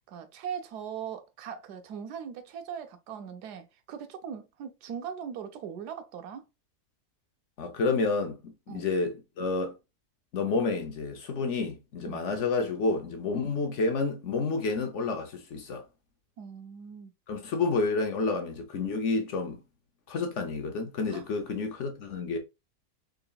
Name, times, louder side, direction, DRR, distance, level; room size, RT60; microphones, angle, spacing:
voice 1, 0.1-6.4 8.7-8.9 12.1-12.2 16.4-17.1 21.1-21.3, right 7 dB, 85° right, 1.3 m, -40 dB
voice 2, 7.6-9.8 10.3-15.8 17.3-19.6 20.1-22.4, left 3 dB, 60° left, 0.9 m, -29 dB
3.9 x 3.8 x 2.3 m
omnidirectional pair, 1.6 m